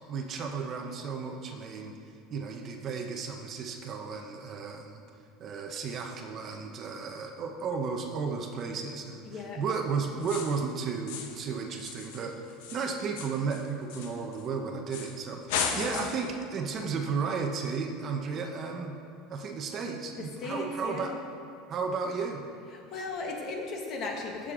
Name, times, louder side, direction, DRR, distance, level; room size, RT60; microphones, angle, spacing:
voice 1, 0.0-2.0 2.3-5.0 5.4-12.4 12.7-19.0 19.3-21.1 21.7-22.4, right 5 dB, 35° right, 3 dB, 0.8 m, -34 dB
voice 2, 9.2-9.6 15.7-16.1 20.2-21.2 22.7-24.5, left 3 dB, 40° left, 1 dB, 1.6 m, -37 dB
sound 1, 10.2-10.7 11.1-11.5 11.8-14.5 14.9-15.2 15.5-16.3, left 6 dB, 75° left, 1.0 m, -36 dB
15.0 x 6.5 x 3.7 m, 2.5 s
supercardioid pair, 150°, 0 cm